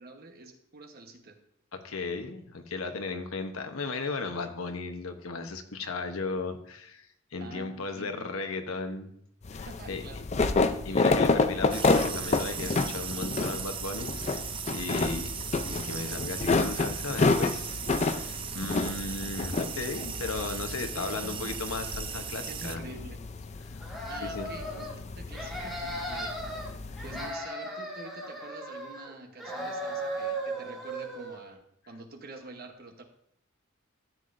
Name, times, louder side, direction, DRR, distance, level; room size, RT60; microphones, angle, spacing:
voice 1, 0.0-1.4 7.4-8.3 9.7-10.6 15.1-15.3 20.8-21.6 22.5-23.2 24.1-26.4 27.0-33.0, right 2 dB, 50° right, 5 dB, 1.1 m, -46 dB
voice 2, 1.8-9.1 9.5-10.2 10.8-15.3 15.7-22.8 23.7-23.8 24.2-24.5, left 3 dB, 80° left, 6 dB, 1.0 m, -36 dB
sound 1, 9.4-27.3, left 3 dB, 35° left, 0.4 m, -30 dB
sound 2, 11.7-22.8, right 8 dB, 25° right, 0.4 m, -38 dB
sound 3, 23.8-24.9 25.3-26.7 27.0-29.1 29.4-31.4, right 1 dB, ahead, 1.9 m, -36 dB
13.5 x 7.5 x 2.6 m, 0.71 s
head